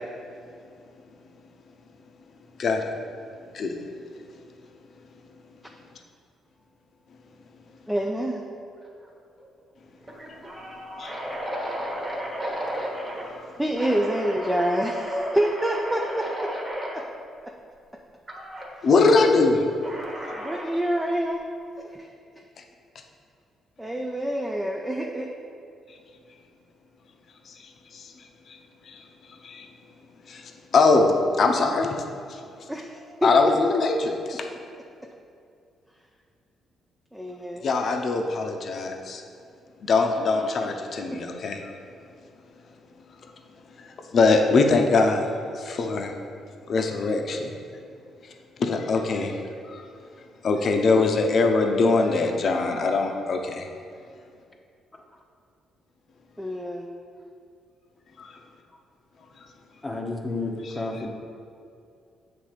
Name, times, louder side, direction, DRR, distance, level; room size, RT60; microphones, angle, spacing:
voice 1, 2.6-2.9 3.5-3.8 5.0-5.4 7.1-7.2 10.3-10.4 10.9-11.2 11.6-12.3 13.3-13.6 18.8-19.6 22.6-22.7 25.9-26.0 27.4-28.6 28.8-29.7 30.2-32.7 33.2-34.5 37.6-39.2 39.8-41.7 42.9-43.3 43.7-46.1 46.7-47.5 48.2-49.4 49.6-49.9 50.2-53.7 58.2-58.4 59.4-59.5 60.6-60.7, left 3 dB, 55° left, 3 dB, 0.7 m, -23 dB
voice 2, 7.9-8.4 13.6-16.5 16.9-17.0 17.4-17.5 20.4-21.5 21.8-22.1 23.8-25.3 32.7-33.3 37.1-37.7 56.4-56.9, equal, 5° right, 1 dB, 0.5 m, -27 dB
sound 1, 8.8-9.1 9.4-9.5 10.0-13.3 13.7-16.9 18.3-18.7 19.8-20.8, equal, 25° right, 1.3 m, -34 dB
voice 3, 59.8-61.1, left 2 dB, 20° left, 1 dB, 0.8 m, -31 dB
7.2 x 3.4 x 5.0 m, 2.4 s
cardioid pair, 90°, 0 cm